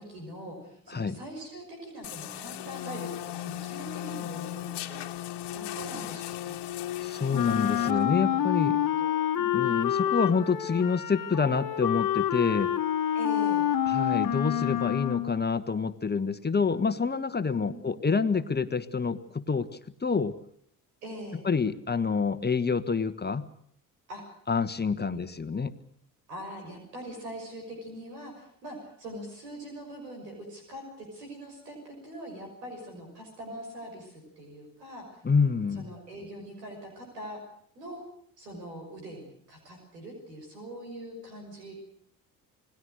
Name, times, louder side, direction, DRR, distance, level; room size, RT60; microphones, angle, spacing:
voice 1, 0.0-5.2 5.5-6.6 7.8-9.7 13.1-13.7 17.5-18.0 21.0-21.4 24.1-24.2 25.0-25.2 26.3-35.2 35.7-37.4 37.7-38.0 38.4-41.7, equal, 85° right, 2 dB, 6.2 m, -43 dB
sound 1, 2.0-7.9, left 13 dB, 60° left, 1.8 m, -37 dB
voice 2, 7.0-8.8 9.5-12.7 13.8-19.7 20.0-20.3 21.4-23.5 24.5-25.7 35.2-35.9, left 5 dB, 20° left, 12 dB, 1.5 m, -27 dB
Wind instrument woodwind instrument, 7.3-15.4, left 10 dB, 40° left, 1.7 m, -27 dB
28.5 x 19.5 x 6.5 m, 0.65 s
hypercardioid pair, 55°, 47 cm